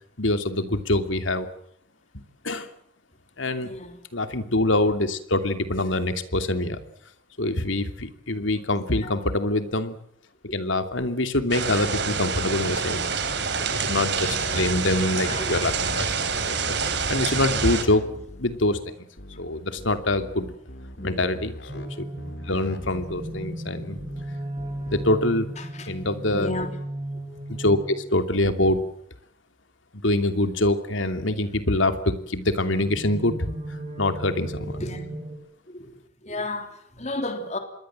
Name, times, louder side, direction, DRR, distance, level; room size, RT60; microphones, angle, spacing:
voice 1, 0.2-1.5 2.4-2.7 3.4-3.7 4.1-6.8 7.4-10.0 10.5-13.1 13.6-16.6 17.1-18.0 18.4-18.9 19.4-20.5 21.0-22.1 22.5-24.0 24.9-25.5 25.9-26.5 27.5-28.8 29.9-33.5 34.0-34.8, left 1 dB, 85° left, 2.7 m, -25 dB
voice 2, 3.6-4.0 9.0-9.2 11.0-11.1 15.3-15.5 21.0-21.3 25.6-25.9 26.3-26.7 34.8-35.2 35.7-37.6, left 2 dB, 35° left, 3.5 m, -33 dB
sound 1, 11.5-17.8, right 5 dB, 65° right, 3.7 m, -27 dB
sound 2, 15.6-17.1 17.4-18.6 19.2-19.5 19.8-21.9 22.2-23.4 24.0-24.3 24.6-25.2, left 1 dB, 60° left, 3.2 m, -41 dB
sound 3, 21.7-28.3 32.6-35.4, right 1 dB, 30° right, 5.1 m, -35 dB
26.5 x 22.0 x 7.6 m
head